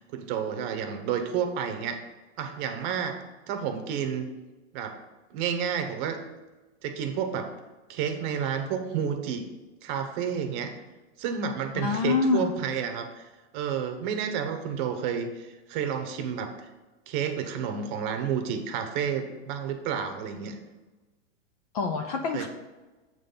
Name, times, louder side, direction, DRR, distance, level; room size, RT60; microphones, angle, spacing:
voice 1, 0.0-2.0 2.4-3.2 3.5-4.3 4.7-5.0 5.3-6.2 6.8-7.5 7.9-9.5 9.8-10.7 11.2-16.5 17.1-20.6 22.3-22.5, right 7 dB, 40° right, 7 dB, 0.9 m, -30 dB
voice 2, 11.7-12.5 21.7-22.5, left 4 dB, 30° left, 5 dB, 0.4 m, -26 dB
7.6 x 4.0 x 5.5 m, 1.2 s
hypercardioid pair, 145°, 39 cm